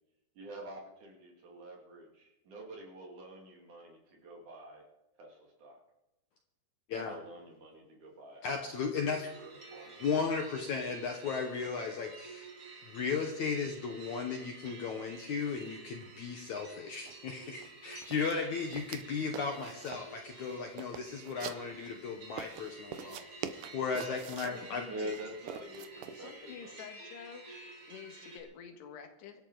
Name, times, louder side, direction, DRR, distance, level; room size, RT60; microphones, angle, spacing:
voice 1, 0.4-4.9 5.2-5.8 7.0-8.6 9.4-10.0 24.9-26.8, equal, 50° right, 0 dB, 3.7 m, -46 dB
voice 2, 8.4-9.3 10.0-12.5 12.8-24.9, left 5 dB, 65° left, 3 dB, 2.0 m, -35 dB
sound 1, 9.0-28.4, right 3 dB, 35° right, 3.6 m, -51 dB
sound 2, 17.1-17.2 17.5-17.7 18.0-19.0 19.3-20.1 20.5-21.9 22.4-24.6 25.1-26.2, right 9 dB, 85° right, 1.8 m, -44 dB
voice 3, 24.4-25.1 26.2-27.5 27.9-29.5, left 7 dB, 90° left, 5 dB, 3.8 m, -49 dB
25.0 x 12.5 x 4.0 m, 0.95 s
omnidirectional pair, 4.7 m